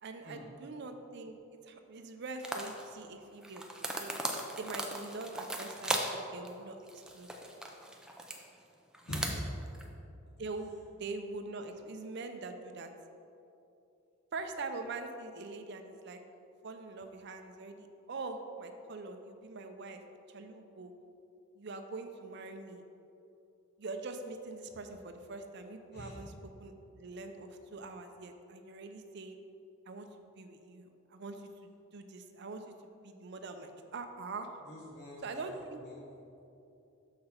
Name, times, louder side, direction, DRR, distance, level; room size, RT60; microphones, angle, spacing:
voice 1, 0.0-1.4 1.7-3.7 4.0-4.1 4.6-7.3 9.8-9.9 10.4-12.9 14.3-16.2 16.6-20.0 20.3-20.9 21.5-22.8 23.8-26.3 26.6-29.4 29.9-30.1 30.4-34.5 35.2-35.8, right 3 dB, 55° right, 6 dB, 0.5 m, -43 dB
sound 1, 2.4-2.9 3.4-6.2 6.4-6.5 6.9-8.4 8.9-9.8, right 1 dB, 5° right, 0.4 m, -38 dB
voice 2, 9.0-9.4 25.9-26.2 34.7-36.0, left 1 dB, 50° left, -5 dB, 0.9 m, -43 dB
6.5 x 5.8 x 4.4 m, 2.8 s
head